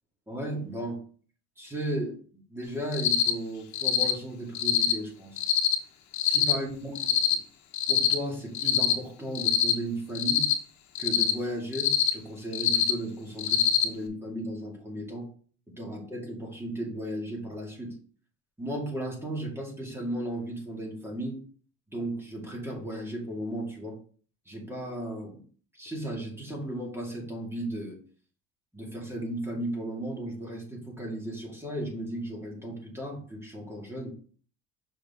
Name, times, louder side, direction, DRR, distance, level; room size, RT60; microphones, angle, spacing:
voice 1, 0.3-1.0 1.6-5.4 6.2-7.4 7.9-10.5 11.0-15.3 15.7-18.0 18.6-21.4 21.9-23.9 24.5-25.4 25.7-28.0 28.7-34.1, right 1 dB, 10° right, -2 dB, 2.3 m, -35 dB
Cricket, 2.9-3.3 3.7-4.1 4.5-4.9 5.4-5.7 6.1-6.5 7.0-7.3 7.7-8.1 8.5-8.9 9.3-9.7 10.1-10.5 11.0-11.3 11.7-12.1 12.5-12.9 13.4-13.8, left 11 dB, 60° left, 1.2 m, -23 dB
6.5 x 4.8 x 3.7 m, 0.43 s
cardioid pair, 130°, 32 cm